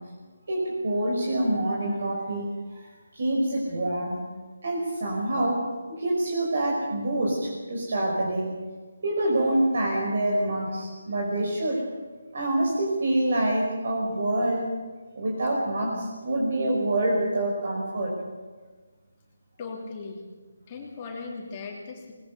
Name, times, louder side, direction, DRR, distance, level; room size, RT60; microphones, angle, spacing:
voice 1, 0.5-2.9 3.1-4.2 4.6-5.7 6.0-8.5 9.0-11.8 12.3-14.7 15.2-18.1, right 1 dB, 50° right, -2 dB, 5.5 m, -26 dB
voice 2, 19.6-20.2 20.7-22.1, left 4 dB, 20° left, -2 dB, 3.0 m, -38 dB
22.5 x 20.5 x 6.8 m, 1.4 s
hypercardioid pair, 170°, 0 cm